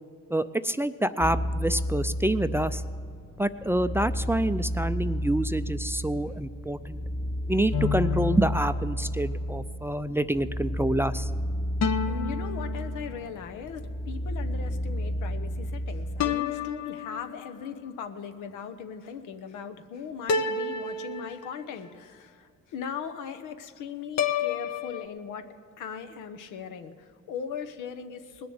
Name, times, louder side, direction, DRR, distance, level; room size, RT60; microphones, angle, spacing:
voice 1, 0.3-2.8 3.4-7.0 7.5-11.3, right 1 dB, 10° right, 13 dB, 0.4 m, -27 dB
sound 1, 1.2-16.4, equal, 15° left, 1.1 m, -32 dB
sound 2, 7.7-9.4 11.8-13.5 16.2-17.7 20.3-21.9 24.2-25.1, left 6 dB, 60° left, 0.8 m, -31 dB
voice 2, 12.1-28.5, left 7 dB, 90° left, 7 dB, 1.0 m, -39 dB
19.5 x 6.9 x 7.8 m, 2.4 s
cardioid pair, 90°, 30 cm